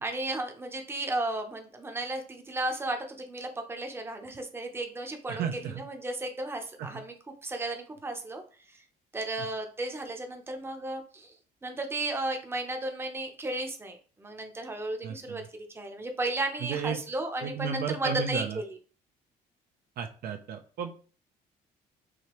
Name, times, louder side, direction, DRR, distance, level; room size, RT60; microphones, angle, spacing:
voice 1, 0.0-7.1 7.4-8.4 8.7-8.8 9.1-11.4 11.6-18.8, right 2 dB, 15° right, 4 dB, 0.7 m, -34 dB
voice 2, 5.3-5.8 6.8-6.9 15.0-15.4 16.7-17.0 17.4-18.6 20.0-21.0, right 7 dB, 65° right, 5 dB, 0.6 m, -33 dB
4.9 x 2.8 x 3.0 m, 0.39 s
cardioid pair, 110°, 17 cm